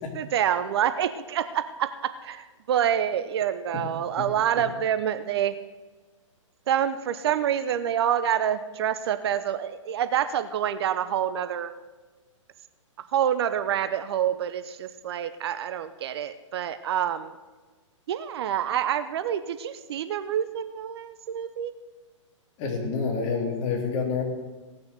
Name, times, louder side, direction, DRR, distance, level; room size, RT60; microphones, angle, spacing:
voice 1, 0.1-5.5 6.7-11.7 13.1-17.3 18.1-21.7, right 9 dB, 50° right, 11 dB, 0.8 m, -27 dB
voice 2, 22.6-24.2, left 5 dB, 35° left, 0 dB, 3.4 m, -27 dB
17.0 x 6.8 x 6.8 m, 1.3 s
hypercardioid pair, 130°, 17 cm